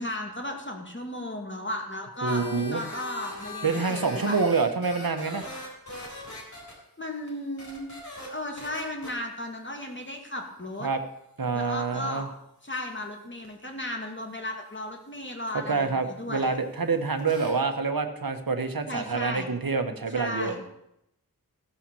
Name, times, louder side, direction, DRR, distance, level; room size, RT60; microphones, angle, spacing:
voice 1, 0.0-4.4 7.0-10.9 11.5-12.3 12.6-16.6 18.9-19.5 20.1-20.6, left 1 dB, 30° left, 2 dB, 2.4 m, -35 dB
voice 2, 2.2-2.8 3.6-5.5 10.8-11.0 11.4-12.3 15.5-20.5, right 4 dB, 65° right, 7 dB, 1.2 m, -27 dB
sound 1, 2.3-6.7 7.3-7.4 7.6-8.3 8.6-9.1 13.4-13.5 17.2-17.5, left 1 dB, 50° left, 4.0 m, -40 dB
15.5 x 5.7 x 7.0 m, 0.82 s
wide cardioid pair, 50°, 37 cm